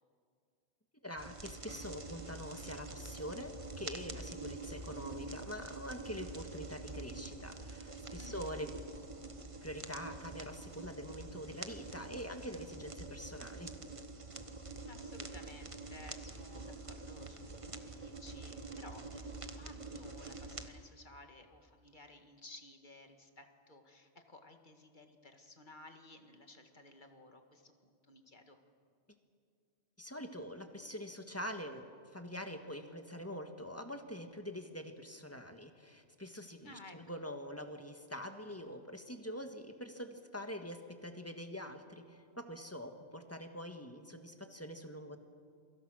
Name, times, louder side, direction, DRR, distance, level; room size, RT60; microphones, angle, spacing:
voice 1, 1.0-8.7 9.6-13.7 30.0-45.2, equal, 15° left, 6 dB, 1.7 m, -45 dB
sound 1, 1.2-20.7, right 3 dB, 30° right, 1.3 m, -46 dB
voice 2, 8.2-8.6 14.8-28.6 36.6-37.2, left 2 dB, 45° left, 5 dB, 2.1 m, -56 dB
28.5 x 23.5 x 6.3 m, 2.3 s
omnidirectional pair, 1.2 m